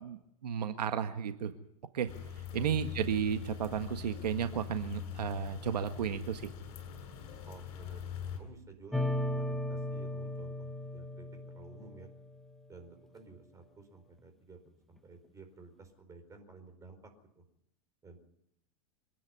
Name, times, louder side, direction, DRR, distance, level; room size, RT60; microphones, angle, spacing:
voice 1, 0.0-1.5 1.9-2.1 2.5-6.5, right 8 dB, 90° right, 8 dB, 1.6 m, -33 dB
sound 1, 2.1-8.4, left 9 dB, 50° left, 7.0 m, -42 dB
voice 2, 2.5-3.1 7.5-8.1 8.4-12.1 12.7-14.6 14.9-17.0 17.3-17.4 18.0-18.2, right 4 dB, 15° right, 5 dB, 4.6 m, -53 dB
sound 2, 8.9-12.4, left 1 dB, ahead, 1.0 m, -36 dB
26.0 x 10.5 x 9.9 m, 0.77 s
hypercardioid pair, 140°, 20 cm